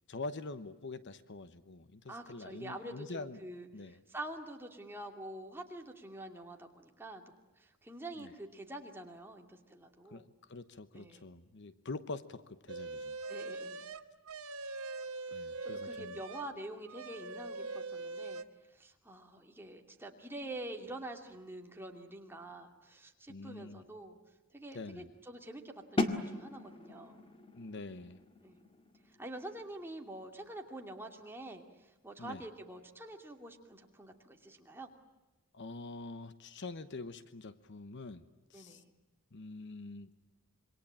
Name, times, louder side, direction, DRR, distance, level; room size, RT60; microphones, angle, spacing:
voice 1, 0.1-3.4 3.7-4.0 8.2-8.3 10.1-13.2 15.3-16.2 23.3-23.8 24.7-25.1 27.5-28.2 32.2-32.4 35.5-38.2 38.5-38.8 39.3-40.2, left 3 dB, 55° left, 13 dB, 1.0 m, -45 dB
voice 2, 2.1-7.2 7.6-10.3 10.9-11.2 13.3-13.9 15.6-18.4 18.7-24.2 24.5-27.2 28.4-28.6 29.0-34.9 38.5-38.8, right 1 dB, 10° right, 2 dB, 2.6 m, -46 dB
sound 1, 12.7-16.5 16.9-18.4, right 3 dB, 80° right, 1.2 m, -42 dB
sound 2, 26.0-31.7, left 2 dB, 25° left, 1.9 m, -40 dB
27.0 x 23.5 x 8.7 m, 1.1 s
head